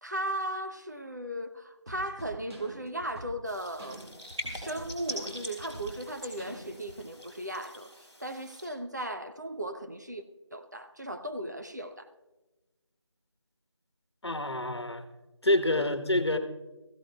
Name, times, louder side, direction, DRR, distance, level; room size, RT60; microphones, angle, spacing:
voice 1, 0.0-4.0 4.5-10.2 10.5-12.1 15.7-15.9, right 1 dB, 40° right, 0.6 m, -37 dB
sound 1, 1.9-7.0, equal, 60° right, 2.2 m, -46 dB
sound 2, 3.4-8.7, equal, 10° right, 2.7 m, -43 dB
voice 2, 14.2-15.0 15.4-16.4, left 1 dB, 65° left, 1.2 m, -27 dB
20.5 x 15.5 x 2.3 m
figure-of-eight pair, 170°, 15 cm